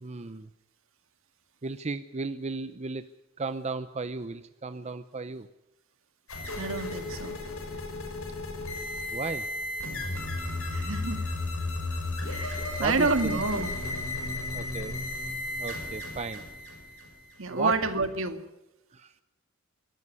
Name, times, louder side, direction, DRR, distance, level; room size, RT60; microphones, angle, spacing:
voice 1, 0.0-0.5 1.6-3.0 3.4-5.5 9.1-9.5 12.4-13.4 14.5-15.0 15.6-16.4 17.5-17.8 18.9-19.1, right 3 dB, 30° right, 12 dB, 0.6 m, -35 dB
sound 1, 6.3-18.2, left 2 dB, 75° left, 5.5 m, -34 dB
voice 2, 6.5-7.4 10.7-11.3 12.3-13.7 17.4-18.4, right 3 dB, 65° right, 9 dB, 2.0 m, -29 dB
24.0 x 13.0 x 9.6 m, 0.98 s
head